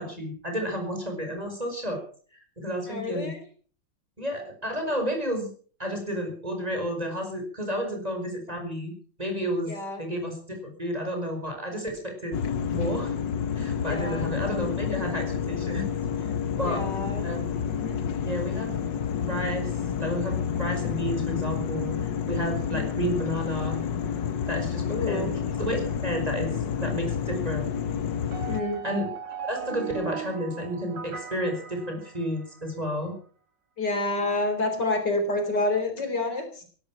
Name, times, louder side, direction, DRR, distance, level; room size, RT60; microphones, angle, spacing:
voice 1, 0.0-2.0 2.6-3.3 4.2-5.5 5.8-8.9 9.2-9.7 10.0-12.4 12.7-13.1 13.6-15.9 16.2-16.3 16.6-16.8 17.2-17.4 18.2-18.7 19.2-19.7 20.0-23.8 24.5-25.3 25.6-27.7 28.8-33.1, equal, 20° right, 3 dB, 5.2 m, -31 dB
voice 2, 2.9-3.4 9.7-10.0 13.8-14.4 16.6-17.2 17.7-18.0 22.7-22.9 24.9-25.3 28.5-28.8 33.8-36.6, left 2 dB, 70° left, 6 dB, 4.6 m, -29 dB
sound 1, 12.3-28.6, left 7 dB, 85° left, 2.0 m, -29 dB
sound 2, 28.3-32.6, right 8 dB, 85° right, 2.5 m, -38 dB
17.0 x 12.5 x 6.0 m, 0.43 s
omnidirectional pair, 1.9 m